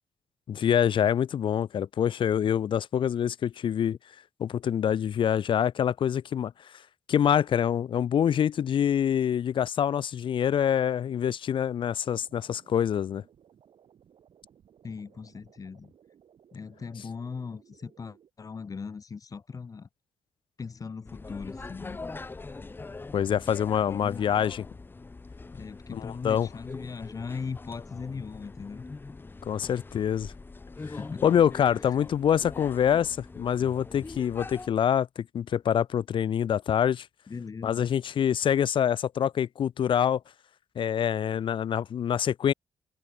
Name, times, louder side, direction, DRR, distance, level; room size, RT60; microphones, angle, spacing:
voice 1, 0.5-4.0 4.4-6.5 7.1-13.2 23.1-24.6 25.9-26.5 29.5-30.3 31.2-37.1 37.6-40.2 40.8-42.5, left 9 dB, 60° left, 0.6 m, -25 dB
sound 1, 12.0-18.3, right 9 dB, 65° right, 4.0 m, -60 dB
voice 2, 14.8-15.9 16.5-19.9 20.6-22.0 23.9-24.3 25.5-28.8 31.0-31.2 31.8-32.0 37.3-37.9, left 5 dB, 35° left, 3.1 m, -39 dB
sound 2, 21.0-34.7, left 3 dB, 20° left, 1.1 m, -43 dB
cardioid pair, 130°, 10 cm